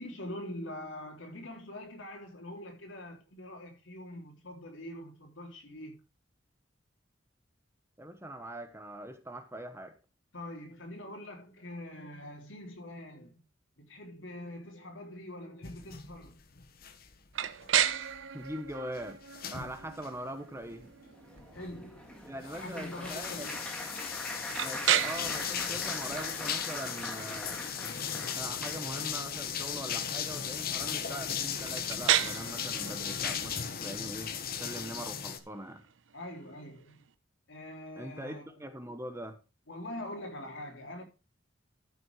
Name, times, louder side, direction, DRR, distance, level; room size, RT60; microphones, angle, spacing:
voice 1, 0.0-6.0 10.3-13.4 13.8-16.3 21.5-22.1 22.4-23.6 36.1-37.0 37.5-38.7 39.7-41.0, left 1 dB, 80° left, 3.4 m, -44 dB
voice 2, 8.0-10.0 18.3-19.2 19.5-20.9 22.2-23.5 24.6-27.6 28.3-35.8 38.0-39.4, right 1 dB, 15° right, 1.1 m, -42 dB
sound 1, 15.6-17.3 17.6-20.2 20.6-20.8 21.4-22.0 22.4-35.4, left 8 dB, 50° left, 1.1 m, -37 dB
sound 2, 17.3-37.1, right 10 dB, 80° right, 0.8 m, -36 dB
Applause, 20.8-29.1 29.8-30.0 30.3-30.5, left 1 dB, 5° left, 1.7 m, -43 dB
12.5 x 6.2 x 4.6 m
head